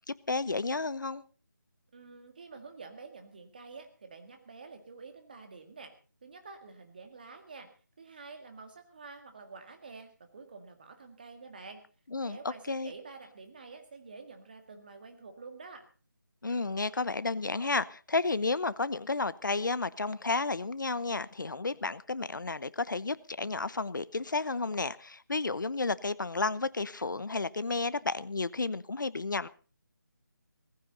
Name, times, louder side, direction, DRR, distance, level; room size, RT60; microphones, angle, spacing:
voice 1, 0.1-1.2 12.1-12.4 12.7-12.9 16.4-29.5, left 3 dB, 65° left, 1.0 m, -32 dB
voice 2, 1.9-5.9 6.2-7.7 8.0-11.8 12.2-15.9, right 4 dB, 25° right, 2.0 m, -48 dB
18.0 x 15.5 x 4.0 m
figure-of-eight pair, 175°, 11 cm